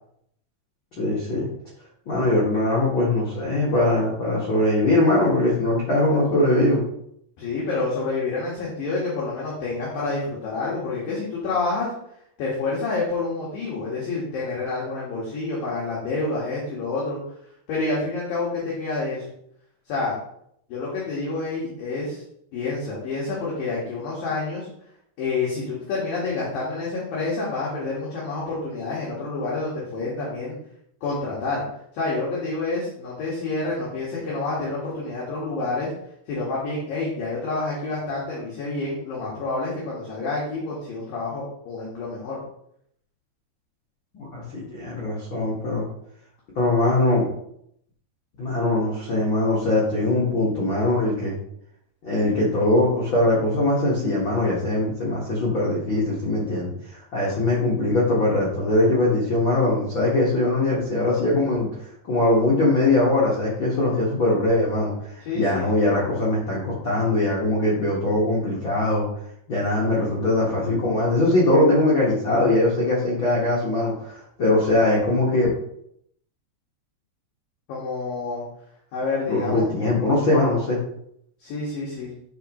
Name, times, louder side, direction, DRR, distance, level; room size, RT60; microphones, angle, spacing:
voice 1, 1.0-1.5 2.0-6.8 44.1-45.9 46.5-47.3 48.4-51.4 52.0-61.7 62.0-69.1 69.5-75.5 79.3-80.8, left 2 dB, 80° left, -6 dB, 1.1 m, -21 dB
voice 2, 7.4-11.9 12.4-17.2 17.7-19.2 19.9-20.2 20.7-22.2 22.5-24.7 25.2-30.6 31.0-31.6 31.9-35.9 36.3-42.4 65.2-65.7 77.7-78.4 78.9-79.9 81.4-82.1, left 3 dB, 60° left, -6 dB, 3.1 m, -28 dB
11.5 x 5.0 x 3.1 m, 0.72 s
omnidirectional pair, 5.3 m